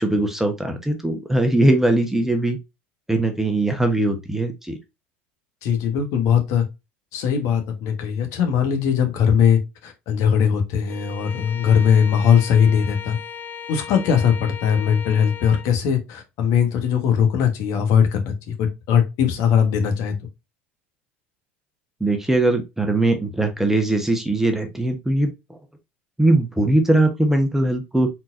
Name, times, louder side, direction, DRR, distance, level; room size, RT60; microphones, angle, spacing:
voice 1, 0.0-2.6 3.1-4.8 22.0-25.6 26.2-28.1, right 2 dB, 5° right, 1.0 m, -20 dB
voice 2, 5.6-6.6 7.1-13.2 13.7-20.1, left 8 dB, 55° left, 1.3 m, -20 dB
Bowed string instrument, 10.9-15.7, left 7 dB, 30° left, 0.8 m, -37 dB
4.5 x 3.9 x 2.6 m
hypercardioid pair, 75°, 6 cm